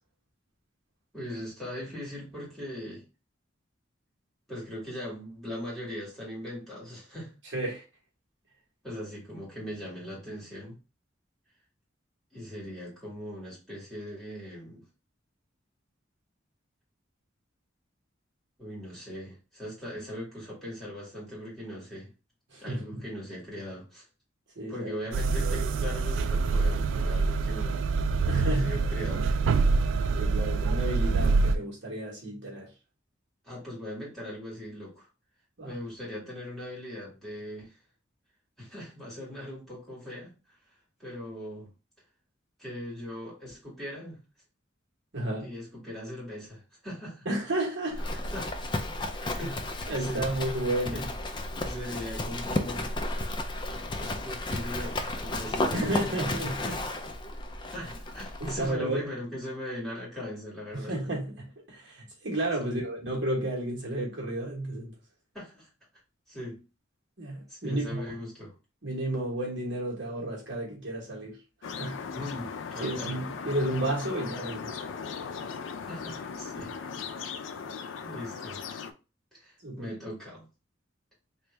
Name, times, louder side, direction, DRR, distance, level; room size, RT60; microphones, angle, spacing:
voice 1, 1.1-3.0 4.5-7.3 8.8-10.8 12.3-14.9 18.6-22.1 22.6-24.0 24.7-27.9 28.2-29.3 33.4-35.1 35.6-37.8 38.6-40.3 41.0-41.7 42.6-44.2 45.4-47.3 48.3-48.7 49.0-50.3 50.8-51.1 51.6-53.0 54.0-56.3 56.6-56.8 57.7-61.0 62.6-62.8 65.3-65.7 66.3-66.6 67.5-68.5 72.1-73.2 75.9-76.9 78.0-78.6 79.3-80.5, left 1 dB, ahead, 2.0 m, -40 dB
voice 2, 7.5-7.8 22.5-23.0 24.6-25.1 28.3-28.8 30.2-32.7 35.6-35.7 45.1-45.5 47.2-48.3 49.2-49.5 49.9-51.0 55.7-56.6 57.6-57.7 58.4-59.1 60.7-64.9 67.2-68.0 68.8-71.4 71.6-72.0 72.8-74.8 79.6-79.9, right 1 dB, 70° right, 1.3 m, -32 dB
sound 1, 25.1-31.6, right 4 dB, 90° right, 0.3 m, -26 dB
Livestock farm animals working animals, 47.9-58.7, left 2 dB, 25° left, 0.4 m, -33 dB
sound 2, 71.6-78.9, left 6 dB, 90° left, 0.4 m, -38 dB
3.1 x 2.6 x 3.3 m
head